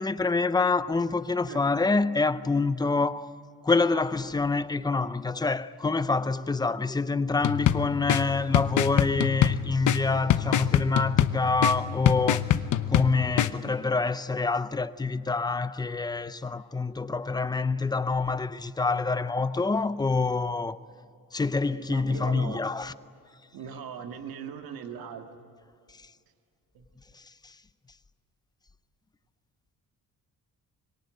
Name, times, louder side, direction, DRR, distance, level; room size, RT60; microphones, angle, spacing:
voice 1, 0.0-3.3 3.6-12.4 12.9-20.8 21.3-22.9 27.1-27.5, left 3 dB, 10° left, 0.6 m, -26 dB
sound 1, 7.4-13.5, left 11 dB, 60° left, 0.9 m, -25 dB
voice 2, 21.9-22.6 23.5-25.3 26.7-26.9, right 7 dB, 85° right, 2.0 m, -39 dB
24.5 x 23.0 x 9.1 m
cardioid pair, 150°, 35 cm